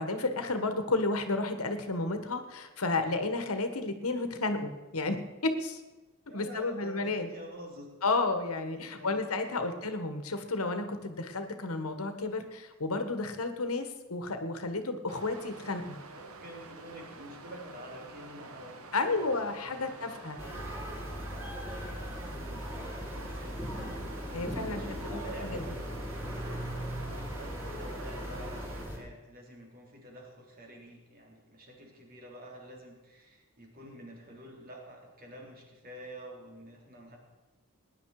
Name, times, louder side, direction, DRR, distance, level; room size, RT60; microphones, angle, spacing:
voice 1, 0.0-5.2 5.4-5.8 6.3-7.3 8.0-15.9 18.9-20.4 24.3-24.8 25.4-25.6, left 3 dB, 80° left, 8 dB, 1.5 m, -32 dB
voice 2, 6.3-7.9 8.7-9.8 15.8-19.4 19.6-20.6 22.2-23.7 24.3-25.9 26.9-37.2, equal, 45° right, 0 dB, 3.5 m, -48 dB
Water, 15.1-28.8, right 3 dB, 75° right, 1.3 m, -48 dB
sound 1, 20.4-29.0, equal, 10° right, 5.5 m, -38 dB
18.5 x 10.0 x 4.9 m, 1.1 s
head